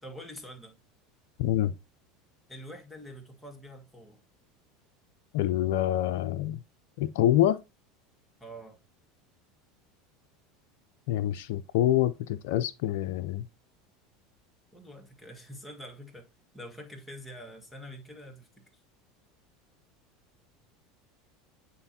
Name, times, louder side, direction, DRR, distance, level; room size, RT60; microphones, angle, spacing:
voice 1, 0.0-0.8 2.5-4.2 8.4-8.8 14.7-16.3 16.5-18.5, equal, ahead, 1.7 m, -45 dB
voice 2, 1.4-1.7 5.3-6.6 7.0-7.6 11.1-13.5, left 12 dB, 65° left, 0.3 m, -26 dB
8.7 x 4.1 x 2.7 m
hypercardioid pair, 75°, 0 cm